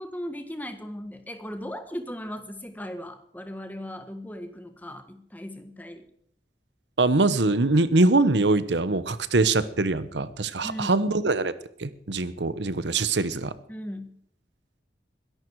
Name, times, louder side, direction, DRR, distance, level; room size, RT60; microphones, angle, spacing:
voice 1, 0.0-6.0 10.6-11.0 13.7-14.2, equal, 10° left, 8 dB, 1.6 m, -37 dB
voice 2, 7.0-11.5 11.8-13.5, right 2 dB, 90° right, 14 dB, 1.1 m, -23 dB
22.0 x 11.5 x 4.8 m, 0.66 s
head